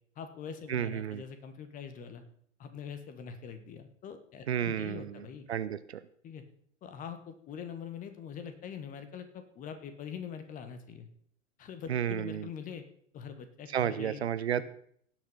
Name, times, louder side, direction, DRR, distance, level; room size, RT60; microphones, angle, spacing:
voice 1, 0.1-2.2 2.6-5.5 6.2-6.4 6.8-11.1 11.6-12.8 13.1-14.2 14.6-14.7, left 7 dB, 20° left, 9 dB, 1.5 m, -43 dB
voice 2, 0.7-1.2 4.5-6.0 11.9-12.5 13.7-14.6, right 9 dB, 60° right, 14 dB, 0.8 m, -32 dB
17.5 x 6.6 x 5.6 m, 0.62 s
figure-of-eight pair, 105°, 37 cm